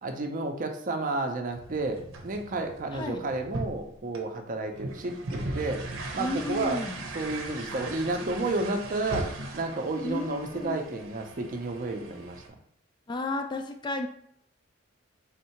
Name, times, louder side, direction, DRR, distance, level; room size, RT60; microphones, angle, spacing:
voice 1, 0.0-5.8 6.1-6.8 7.1-12.4, right 2 dB, 45° right, 4 dB, 0.5 m, -31 dB
sound 1, 1.5-12.5, right 2 dB, 90° right, 0.7 m, -39 dB
voice 2, 2.9-3.2 6.2-7.0 10.0-10.8 13.1-14.1, left 2 dB, 25° left, 5 dB, 0.3 m, -32 dB
3.6 x 2.7 x 4.4 m, 0.67 s
head